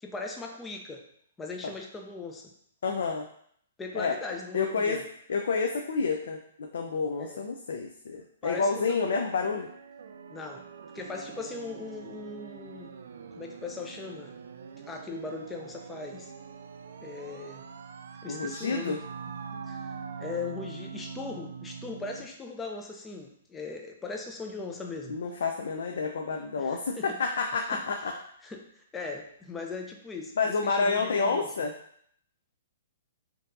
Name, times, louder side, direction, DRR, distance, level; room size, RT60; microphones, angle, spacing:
voice 1, 0.0-1.0 1.4-2.5 3.8-5.0 7.2-7.4 8.4-9.1 10.3-10.7 10.9-12.9 13.4-14.3 14.9-16.3 17.0-17.7 18.2-19.0 19.5-25.2 26.6-27.2 27.5-27.8 28.4-31.5, left 3 dB, 10° left, 2 dB, 0.4 m, -39 dB
voice 2, 2.8-3.3 3.9-4.2 4.5-5.0 5.3-9.7 18.3-19.0 25.1-28.1 30.4-31.7, left 4 dB, 75° left, 3 dB, 0.4 m, -29 dB
sound 1, 8.7-22.3, right 6 dB, 70° right, 0.3 m, -44 dB
4.3 x 2.7 x 2.6 m, 0.66 s
hypercardioid pair, 155°, 0 cm